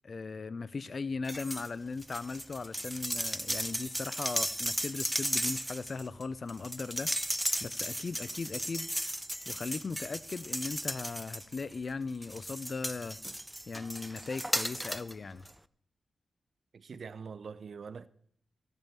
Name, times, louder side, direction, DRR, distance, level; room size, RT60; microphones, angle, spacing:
voice 1, 0.0-7.1 7.6-8.9 9.5-13.2 13.7-15.4, left 4 dB, 55° left, 0.5 m, -38 dB
sound 1, 1.2-1.7 2.0-11.8 12.2-15.1 15.5-15.6, equal, 5° right, 0.5 m, -35 dB
voice 2, 16.7-18.1, right 5 dB, 65° right, 0.6 m, -44 dB
15.5 x 5.5 x 7.4 m
cardioid pair, 60°, 0 cm